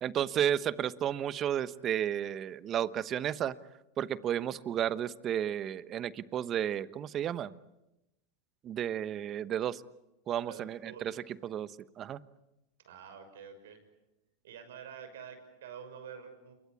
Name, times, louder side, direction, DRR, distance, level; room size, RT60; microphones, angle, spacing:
voice 1, 0.0-3.5 4.0-7.5 8.6-9.8 10.3-11.1 11.4-11.7 12.0-12.2, right 10 dB, 35° right, 16 dB, 1.0 m, -32 dB
voice 2, 10.5-11.2 12.8-13.8 14.4-16.5, right 7 dB, 75° right, 9 dB, 6.2 m, -48 dB
28.0 x 23.0 x 8.5 m, 0.94 s
hypercardioid pair, 110°, 0 cm